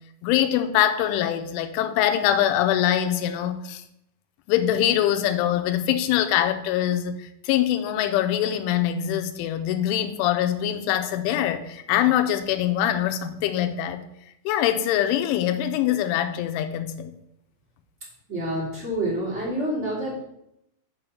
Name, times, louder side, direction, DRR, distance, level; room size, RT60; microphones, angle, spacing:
voice 1, 0.2-3.8 4.5-14.0 14.5-17.1, left 11 dB, 80° left, 9 dB, 3.0 m, -23 dB
voice 2, 18.3-20.3, right 1 dB, 20° right, -7 dB, 2.2 m, -28 dB
7.1 x 5.6 x 5.6 m, 0.80 s
omnidirectional pair, 5.7 m